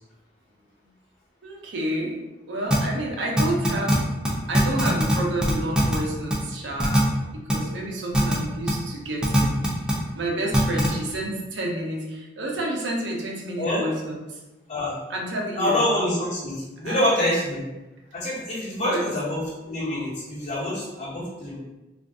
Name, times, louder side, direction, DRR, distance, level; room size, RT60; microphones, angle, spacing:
voice 1, 1.4-2.1 2.5-4.0 4.5-7.1 7.5-9.6 10.1-14.4 15.1-15.9 16.8-17.0 18.8-19.0, right 1 dB, 65° right, -1 dB, 0.6 m, -29 dB
sound 1, 2.7-2.8 3.4-4.0 4.2-4.3 4.5-5.1 5.4-6.0 6.3-6.4 6.8-7.0 7.5-7.6 8.1-8.3 8.7-8.8 9.2-9.9 10.5-10.9, equal, 5° right, 0.5 m, -19 dB
voice 2, 15.6-17.6 18.1-21.6, left 1 dB, 35° left, -10 dB, 1.3 m, -26 dB
2.5 x 2.5 x 3.4 m, 1.1 s
head